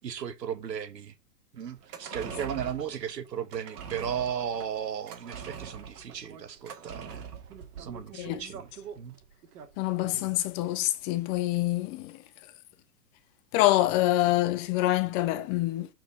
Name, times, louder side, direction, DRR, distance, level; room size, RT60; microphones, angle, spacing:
voice 1, 0.0-1.1 1.5-7.3 7.8-8.7 9.0-9.1 10.1-10.2, right 8 dB, 90° right, 1.2 m, -35 dB
sound 1, 1.7-10.4 10.7-10.8, right 7 dB, 65° right, 2.0 m, -43 dB
voice 2, 9.8-12.2 13.5-15.9, left 15 dB, 40° left, 1.2 m, -26 dB
7.9 x 4.4 x 4.3 m
hypercardioid pair, 120°, 48 cm